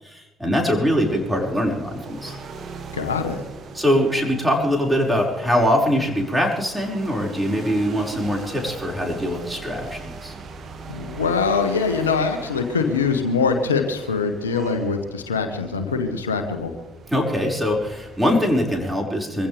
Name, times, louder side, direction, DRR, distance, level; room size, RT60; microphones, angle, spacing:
voice 1, 0.0-2.4 3.7-10.3 17.1-19.5, equal, 10° right, 0 dB, 5.5 m, -22 dB
sound 1, 0.6-18.8, right 4 dB, 50° right, 2.1 m, -40 dB
voice 2, 2.9-3.4 10.9-16.7, left 5 dB, 90° left, 7 dB, 1.3 m, -23 dB
24.0 x 15.5 x 3.5 m, 1.0 s
hypercardioid pair, 55°, 0 cm